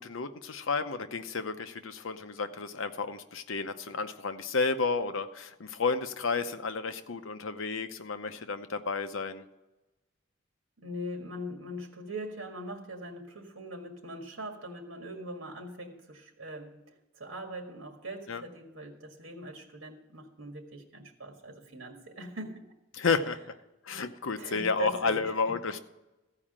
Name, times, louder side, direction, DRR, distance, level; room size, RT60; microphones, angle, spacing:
voice 1, 0.0-9.4 18.3-18.4 22.9-23.4 23.8-25.8, left 4 dB, 80° left, 9 dB, 0.7 m, -31 dB
voice 2, 10.8-22.7 24.4-25.6, right 1 dB, 75° right, 3 dB, 1.8 m, -41 dB
14.5 x 4.9 x 8.8 m, 1.0 s
head